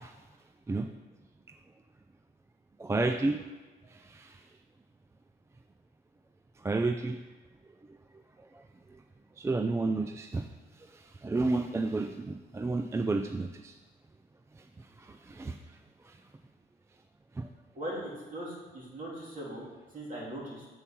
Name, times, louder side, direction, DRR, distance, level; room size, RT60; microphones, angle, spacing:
voice 1, 2.8-3.4 3.9-4.4 6.6-7.2 9.4-10.4 10.9-13.7 15.0-15.6 16.1-16.2 17.4-17.5, right 3 dB, 15° right, 6 dB, 0.3 m, -31 dB
voice 2, 17.7-20.7, right 1 dB, 40° right, -4 dB, 2.8 m, -40 dB
7.1 x 4.5 x 5.8 m, 1.3 s
cardioid pair, 90°, 20 cm